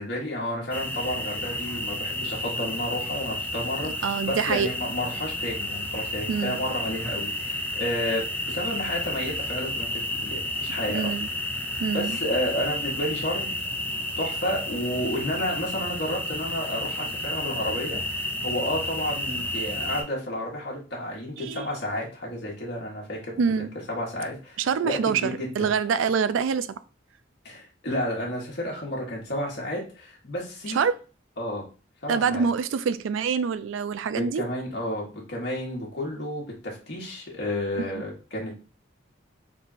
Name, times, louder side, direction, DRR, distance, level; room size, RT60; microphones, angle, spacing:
voice 1, 0.0-11.1 11.9-13.5 14.2-24.6 24.8-25.7 27.4-30.8 31.4-31.6 32.0-32.5 34.1-38.6, left 1 dB, 60° left, 1.4 m, -31 dB
sound 1, 0.7-20.0, left 1 dB, 10° left, 0.6 m, -31 dB
voice 2, 4.0-4.7 6.3-6.6 10.9-11.3 11.8-12.2 21.4-21.7 23.4-23.7 24.6-26.7 30.7-31.0 32.1-34.5 37.8-37.9, right 6 dB, 90° right, 0.3 m, -25 dB
3.5 x 2.5 x 4.0 m
head